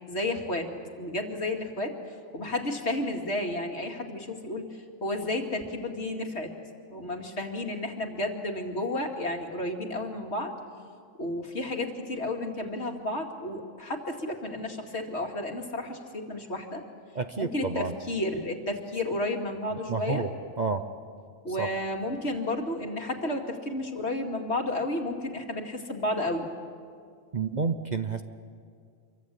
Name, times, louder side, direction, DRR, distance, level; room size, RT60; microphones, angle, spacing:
voice 1, 0.1-0.7 1.0-1.9 2.3-4.7 5.0-6.5 6.9-10.5 11.2-16.8 17.4-20.2 21.4-26.5, left 1 dB, 60° left, 2 dB, 2.7 m, -32 dB
voice 2, 17.1-17.9 19.9-20.3 20.6-20.8 21.6-21.7 27.3-28.2, right 4 dB, 40° right, 8 dB, 0.9 m, -29 dB
27.0 x 24.0 x 8.4 m, 2.2 s
omnidirectional pair, 1.3 m